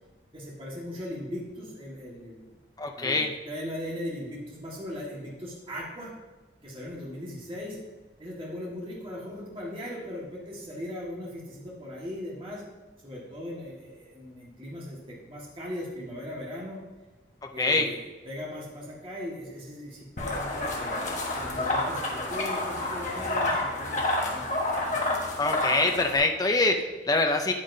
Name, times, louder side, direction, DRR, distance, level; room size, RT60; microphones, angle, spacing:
voice 1, 0.3-2.4 2.9-6.1 6.6-7.8 8.2-12.6 13.0-16.8 17.5-21.0 21.3-25.1, left 1 dB, 30° right, -5 dB, 1.7 m, -39 dB
voice 2, 2.8-3.3 17.6-17.9 25.4-27.5, left 2 dB, 20° left, 4 dB, 0.5 m, -24 dB
sound 1, 20.2-26.2, left 1 dB, 40° left, 1.2 m, -29 dB
9.2 x 8.7 x 2.7 m, 1.2 s
head